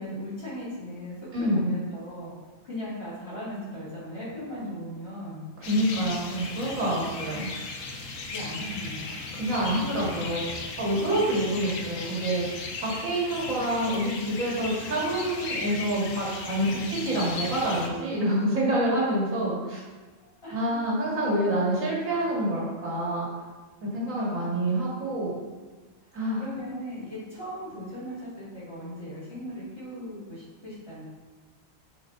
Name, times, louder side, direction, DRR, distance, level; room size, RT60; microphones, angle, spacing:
voice 1, 0.0-2.3 2.6-5.5 6.0-6.4 8.2-9.3 13.4-13.6 16.8-17.0 20.4-20.8 24.1-24.6 26.4-31.0, left 1 dB, 50° left, -10 dB, 2.7 m, -38 dB
voice 2, 1.3-1.7 5.6-7.5 9.3-12.5 12.8-19.8 20.5-23.3 23.9-25.4 26.1-26.4, right 1 dB, 75° right, -6 dB, 2.5 m, -27 dB
sound 1, 5.6-17.9, left 3 dB, 75° left, 1.2 m, -36 dB
7.8 x 4.7 x 4.0 m, 1.3 s
omnidirectional pair, 1.4 m